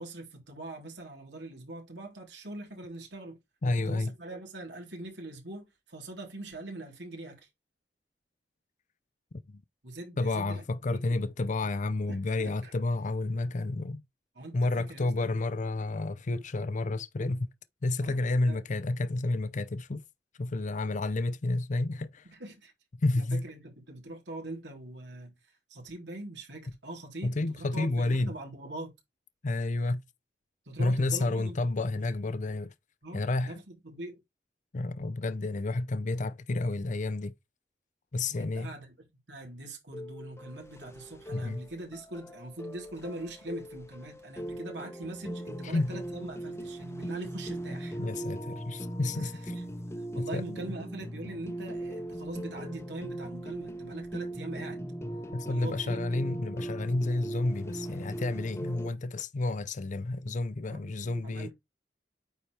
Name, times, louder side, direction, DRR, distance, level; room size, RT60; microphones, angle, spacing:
voice 1, 0.0-3.4 3.6-7.5 9.8-10.6 10.9-11.3 12.1-12.7 14.3-15.4 18.0-18.2 18.5-18.6 22.3-22.7 23.2-25.3 25.7-28.9 30.7-31.6 33.0-34.2 38.3-39.0 39.3-48.0 49.1-49.6 50.0-54.9 55.5-56.0 60.7-61.5, right 1 dB, 85° right, 3.6 m, -42 dB
voice 2, 3.6-4.1 9.5-9.6 10.2-14.0 14.5-17.5 17.8-20.0 20.4-22.3 23.0-23.4 27.2-28.3 29.4-30.0 30.8-32.7 33.1-33.5 34.7-37.3 38.1-38.7 41.3-41.6 45.7-45.9 48.0-49.3 50.2-50.7 55.3-61.5, left 2 dB, 45° left, 0.6 m, -30 dB
sound 1, 39.9-58.9, right 1 dB, 15° left, 0.9 m, -39 dB
9.1 x 4.4 x 3.3 m
head